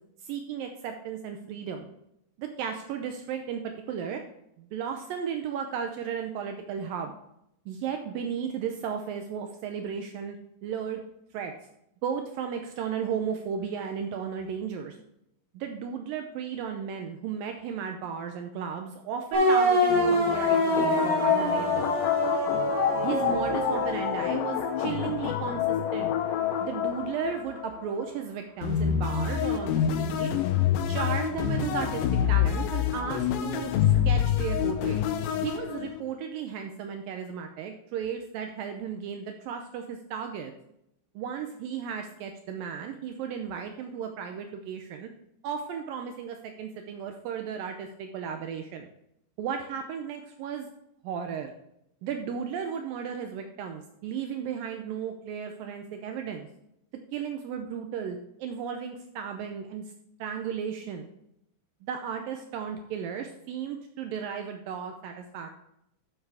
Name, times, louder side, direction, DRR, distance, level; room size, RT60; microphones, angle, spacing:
voice 1, 0.2-1.9 2.4-4.2 4.6-7.1 7.7-10.4 10.6-11.0 11.3-11.5 12.0-15.0 15.5-21.9 23.0-26.2 26.6-30.3 30.9-35.0 35.4-40.5 41.2-45.1 45.4-48.9 49.4-50.7 51.0-51.5 52.0-56.5 57.1-59.8 60.2-61.1 61.8-65.5, right 7 dB, 90° right, 4 dB, 2.0 m, -34 dB
sound 1, 19.3-25.0, right 1 dB, 40° right, 3.3 m, -26 dB
sound 2, 19.9-28.1 28.6-36.0, left 9 dB, 75° left, 2.2 m, -27 dB
11.0 x 7.4 x 3.5 m, 0.78 s
omnidirectional pair, 5.0 m